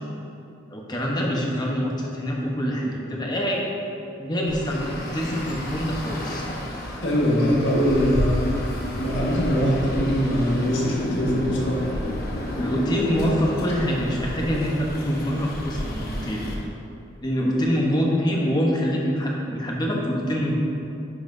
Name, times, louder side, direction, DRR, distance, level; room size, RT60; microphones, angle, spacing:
voice 1, 0.7-3.6 4.2-6.4 12.6-16.4 17.2-20.6, equal, 20° left, -2 dB, 0.9 m, -25 dB
Traffic noise roadway noise, 4.5-16.5, equal, 50° left, 1.1 m, -31 dB
voice 2, 7.0-8.5 9.0-11.8, equal, 75° left, -4 dB, 1.5 m, -22 dB
10.5 x 5.6 x 2.7 m, 2.7 s
head